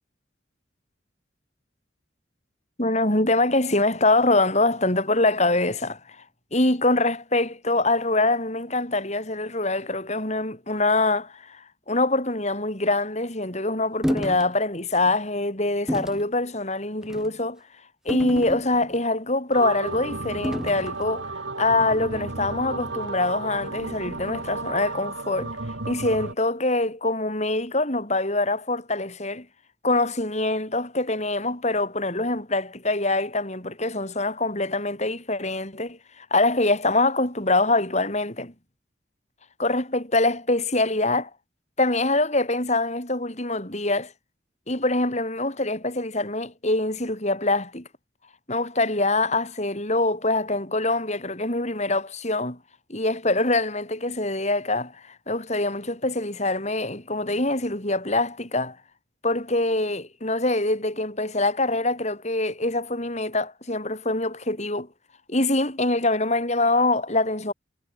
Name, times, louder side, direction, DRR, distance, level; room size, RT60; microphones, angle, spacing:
voice 1, 2.8-6.2 6.5-17.6 18.0-25.6 25.9-29.5 29.8-38.5 39.6-41.3 41.8-44.1 44.7-47.9 48.5-52.6 52.9-58.8 59.2-64.9 65.3-67.5, left 2 dB, 40° left, 7.9 m, -24 dB
sound 1, 14.0-14.5 14.9-15.1 15.9-16.2 17.0-17.3 18.1-19.0 20.4-20.9, equal, 5° right, 7.6 m, -29 dB
sound 2, 19.5-26.3, right 3 dB, 75° right, 2.3 m, -33 dB
head